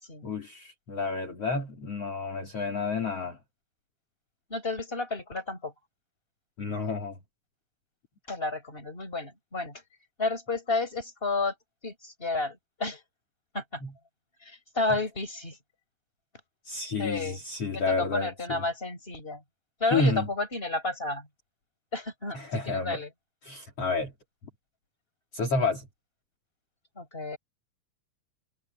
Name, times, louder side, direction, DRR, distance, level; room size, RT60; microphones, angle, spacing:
voice 1, 0.2-3.4 6.6-7.2 13.8-13.9 16.7-18.6 19.9-20.3 22.3-23.0 23.4-24.1 25.3-25.9, left 3 dB, 45° left, 4.3 m, -30 dB
voice 2, 4.5-5.7 8.3-9.8 10.2-11.5 11.8-13.0 13.5-13.8 14.4-15.6 17.0-17.4 17.7-19.4 19.8-21.3 21.9-23.1 27.0-27.4, left 3 dB, 15° left, 6.2 m, -31 dB
omnidirectional pair, 4.0 m